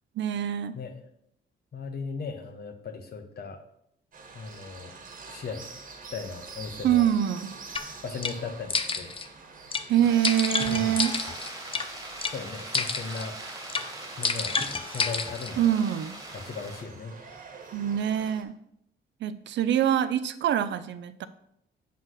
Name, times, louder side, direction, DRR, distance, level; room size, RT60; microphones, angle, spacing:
voice 1, 0.2-0.8 6.8-7.6 9.9-11.2 15.6-16.2 17.7-18.6 19.2-21.3, right 10 dB, 65° right, 13 dB, 0.6 m, -25 dB
voice 2, 1.7-3.6 4.3-4.9 5.3-5.8 6.1-7.0 8.0-9.1 10.6-11.0 12.3-13.4 14.2-14.6 14.9-15.7 16.3-17.1, left 4 dB, 50° left, 6 dB, 1.4 m, -37 dB
sound 1, 4.1-18.4, right 4 dB, 40° right, 1.5 m, -47 dB
sound 2, 7.8-7.9 8.2-8.4 8.7-9.3 9.7-9.9 10.2-11.9 12.2-12.4 12.7-13.3 13.7-13.9 14.2-15.5, left 4 dB, 25° left, 0.6 m, -29 dB
sound 3, 10.0-16.8, right 2 dB, 15° right, 1.9 m, -41 dB
8.0 x 3.8 x 6.4 m, 0.73 s
cardioid pair, 90°, 20 cm